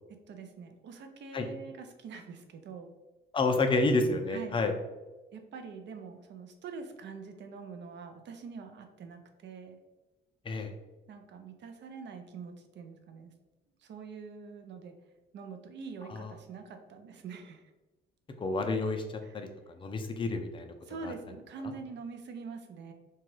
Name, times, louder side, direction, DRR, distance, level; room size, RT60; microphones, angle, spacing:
voice 1, 0.3-2.9 4.3-4.6 5.3-9.8 11.1-13.4 13.8-15.0 15.3-17.7 19.2-19.5 20.8-22.9, right 5 dB, 60° right, 6 dB, 0.5 m, -45 dB
voice 2, 3.3-4.7 10.4-10.7 16.1-16.3 18.4-19.0 19.3-19.5 19.8-20.7 21.0-21.1, left 3 dB, 25° left, 5 dB, 0.4 m, -29 dB
2.9 x 2.3 x 3.0 m, 1.2 s
cardioid pair, 90°, 20 cm